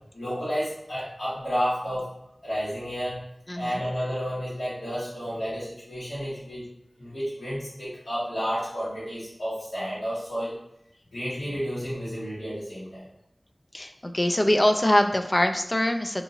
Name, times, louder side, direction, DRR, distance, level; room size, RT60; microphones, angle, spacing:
voice 1, 0.1-2.1 2.4-3.2 3.5-6.7 7.0-10.5 11.1-13.1, equal, 80° left, -12 dB, 1.4 m, -31 dB
voice 2, 3.5-3.8 13.7-16.2, left 1 dB, 30° left, 6 dB, 0.3 m, -23 dB
2.8 x 2.5 x 3.8 m, 0.79 s
wide cardioid pair, 60°, 0 cm